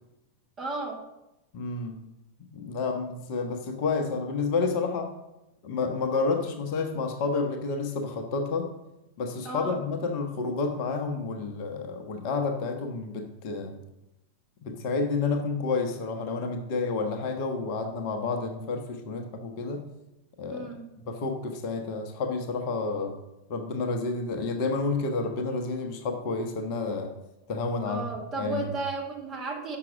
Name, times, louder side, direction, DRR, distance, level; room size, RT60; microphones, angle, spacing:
voice 1, 0.6-1.0 9.4-9.8 20.5-20.8 27.8-29.8, right 2 dB, 25° right, -1 dB, 2.0 m, -34 dB
voice 2, 1.5-2.0 2.5-5.1 5.6-8.7 9.2-13.8 14.6-19.8 20.4-20.7 21.1-23.1 23.5-27.1 27.5-28.7, left 4 dB, 45° left, 4 dB, 1.0 m, -30 dB
6.0 x 5.9 x 6.0 m, 0.91 s
figure-of-eight pair, 90°, 0 cm